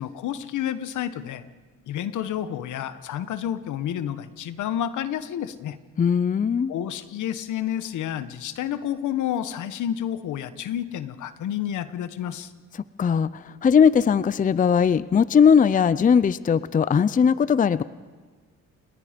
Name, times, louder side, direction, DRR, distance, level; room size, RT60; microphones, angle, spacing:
voice 1, 0.0-1.4 1.9-5.8 6.7-12.5, left 10 dB, 80° left, 12 dB, 1.2 m, -30 dB
voice 2, 6.0-6.7 13.0-17.8, left 7 dB, 25° left, 17 dB, 0.5 m, -19 dB
29.0 x 19.0 x 5.2 m, 1.4 s
cardioid pair, 90°, 30 cm